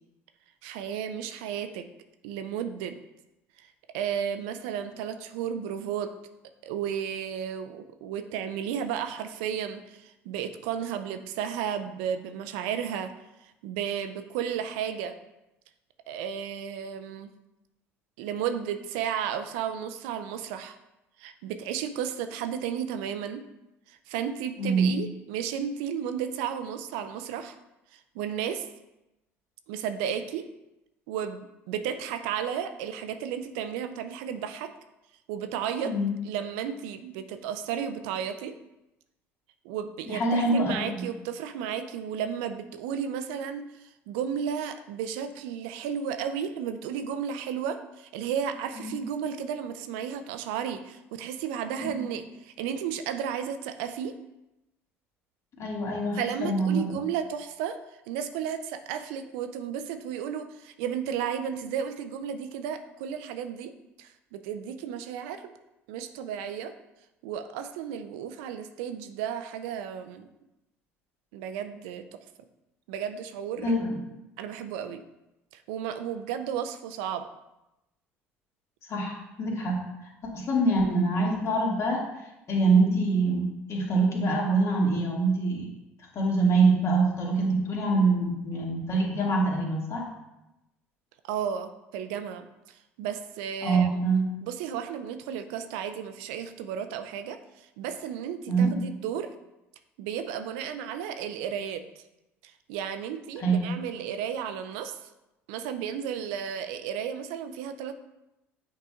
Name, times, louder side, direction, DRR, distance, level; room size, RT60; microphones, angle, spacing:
voice 1, 0.6-1.8 2.2-3.0 3.6-3.7 3.9-6.1 6.6-13.1 13.4-15.1 16.1-17.3 18.2-20.8 21.2-23.4 23.9-27.6 27.9-28.7 29.7-30.5 31.1-34.7 35.3-35.9 36.2-38.5 39.6-54.1 56.1-57.8 58.1-63.7 64.0-65.5 65.9-66.7 67.2-70.3 71.3-72.0 72.9-73.7 74.4-75.0 75.5-77.3 91.2-94.0 94.4-99.3 100.0-102.0 102.4-105.0 105.5-107.9, right 8 dB, 70° right, 9 dB, 0.5 m, -33 dB
voice 2, 24.6-24.9 35.8-36.1 40.1-41.0 48.8-48.9 51.8-52.0 55.6-57.0 73.6-74.0 78.9-79.8 80.3-82.0 82.5-85.7 86.1-90.1 93.6-94.2 98.5-98.7 103.4-103.6, right 3 dB, 45° left, -2 dB, 2.0 m, -25 dB
8.3 x 4.8 x 2.4 m, 0.93 s
hypercardioid pair, 60°, 7 cm